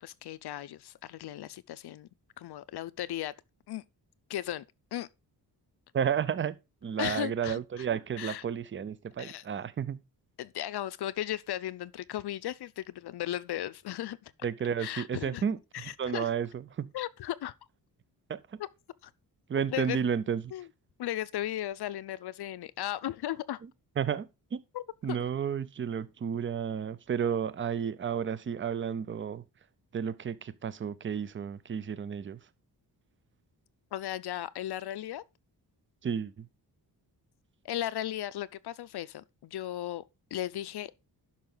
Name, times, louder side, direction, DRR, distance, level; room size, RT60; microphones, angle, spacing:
voice 1, 0.0-2.1 2.4-3.3 3.7-3.8 4.3-4.6 4.9-5.1 7.0-7.9 8.2-8.4 9.2-9.4 10.4-14.3 14.8-15.4 15.7-16.3 16.9-17.5 18.6-18.7 19.0-19.1 19.7-20.0 20.5-20.7 21.0-23.6 24.7-25.2 33.9-35.2 37.6-40.0 40.3-40.9, left 12 dB, 70° left, 0.6 m, -36 dB
voice 2, 5.9-6.6 6.8-10.0 14.4-15.6 16.0-16.5 16.8-16.9 18.3-18.6 19.5-20.4 24.0-24.6 25.0-29.4 29.9-32.4 36.0-36.5, right 7 dB, 30° right, 0.5 m, -32 dB
11.5 x 5.4 x 3.8 m
wide cardioid pair, 155°, 40 cm